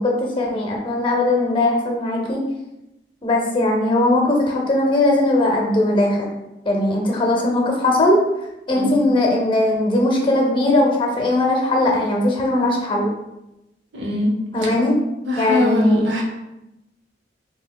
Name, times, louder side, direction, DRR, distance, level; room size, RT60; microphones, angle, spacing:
voice 1, 0.0-2.4 3.2-6.3 6.6-8.2 8.7-13.1 14.5-14.9 15.4-16.0, left 1 dB, 30° left, 0 dB, 0.6 m, -19 dB
voice 2, 13.9-14.3 15.3-16.2, left 1 dB, 80° right, 0 dB, 0.7 m, -22 dB
3.9 x 2.8 x 2.2 m, 0.91 s
head